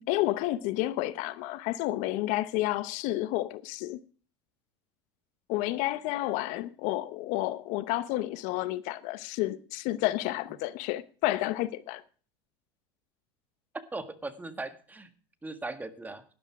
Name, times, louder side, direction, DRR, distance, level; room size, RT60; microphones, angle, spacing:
voice 1, 0.0-4.0 5.5-12.0, left 16 dB, 60° left, 0.8 m, -30 dB
voice 2, 13.7-15.1 15.4-16.2, right 2 dB, 10° right, 1.7 m, -38 dB
12.0 x 11.0 x 4.8 m
hypercardioid pair, 95°, 14 cm